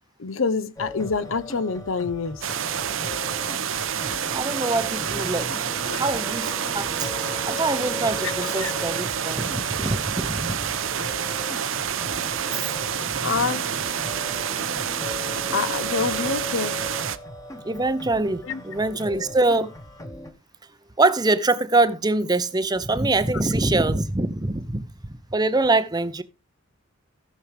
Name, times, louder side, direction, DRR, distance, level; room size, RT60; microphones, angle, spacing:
voice 1, 0.2-2.5 5.8-6.0 8.2-8.3 8.6-8.7 13.2-13.6 15.5-16.8 18.4-18.6, left 5 dB, 70° left, 0.7 m, -26 dB
sound 1, 0.8-20.3, left 1 dB, 15° left, 1.3 m, -38 dB
sound 2, 2.4-17.2, right 8 dB, 65° right, 0.8 m, -28 dB
voice 2, 4.3-7.1 7.5-10.7 17.6-19.7 21.0-24.8 25.3-26.2, right 2 dB, 20° right, 0.7 m, -24 dB
sound 3, 5.3-9.7, right 6 dB, 45° left, 2.5 m, -44 dB
16.5 x 6.4 x 3.4 m
head